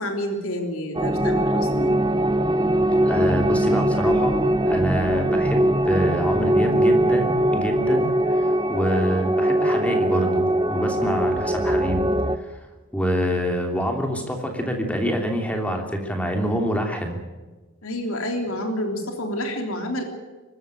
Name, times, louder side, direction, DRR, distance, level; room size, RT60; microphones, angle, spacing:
voice 1, 0.0-2.0 17.8-20.0, left 1 dB, 80° left, 4 dB, 3.3 m, -28 dB
sound 1, 1.0-12.4, right 1 dB, 20° right, 0.8 m, -21 dB
voice 2, 3.0-12.1 12.3-12.7 12.9-17.2, equal, 5° left, 3 dB, 3.0 m, -26 dB
24.0 x 13.5 x 9.2 m, 1.3 s
head